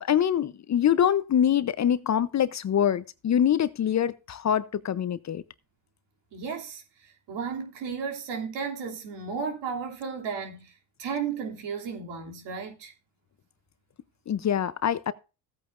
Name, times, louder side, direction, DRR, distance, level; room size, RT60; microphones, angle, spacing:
voice 1, 0.0-5.4 14.3-15.1, left 9 dB, 40° left, 0.7 m, -24 dB
voice 2, 6.3-10.7 11.0-12.9, right 6 dB, 70° right, 3.0 m, -34 dB
15.5 x 8.6 x 2.5 m
supercardioid pair, 75°, 44 cm